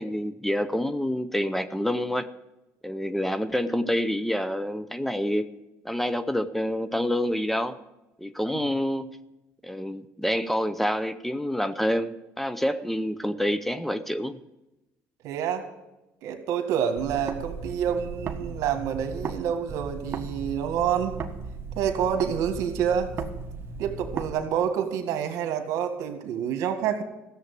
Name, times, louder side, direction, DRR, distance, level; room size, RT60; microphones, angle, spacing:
voice 1, 0.0-2.3 2.8-5.5 5.8-7.8 8.2-9.1 9.6-14.4, equal, 5° left, 12 dB, 0.6 m, -27 dB
voice 2, 15.2-15.7 16.2-21.1 21.8-23.1 23.8-27.0, right 8 dB, 70° right, 6 dB, 1.9 m, -27 dB
sound 1, 17.0-19.4 19.7-24.3, right 4 dB, 45° right, 1.4 m, -36 dB
15.0 x 7.3 x 8.3 m, 0.97 s
cardioid pair, 95°, 6 cm